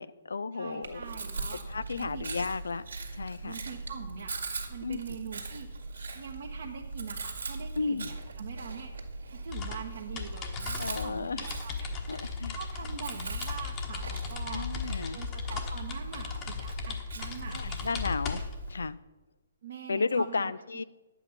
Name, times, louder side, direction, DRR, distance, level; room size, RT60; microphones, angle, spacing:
voice 1, 0.0-1.0 1.6-2.8 3.1-3.6 4.8-5.0 7.8-8.1 10.8-11.5 12.1-12.6 14.5-15.2 17.5-18.4 18.7-19.0 19.9-20.8, left 4 dB, 70° left, 16 dB, 0.3 m, -33 dB
voice 2, 0.5-1.6 1.9-2.3 3.4-4.4 4.7-5.8 6.1-8.9 9.3-12.3 12.5-17.8 19.6-20.5, right 7 dB, 55° right, -1 dB, 1.1 m, -43 dB
Chewing mastication, 0.8-18.9, right 3 dB, 75° right, 1.9 m, -40 dB
sound 1, 9.5-18.7, left 6 dB, 25° left, 1.3 m, -37 dB
10.5 x 8.2 x 5.5 m, 1.2 s
figure-of-eight pair, 125°, 0 cm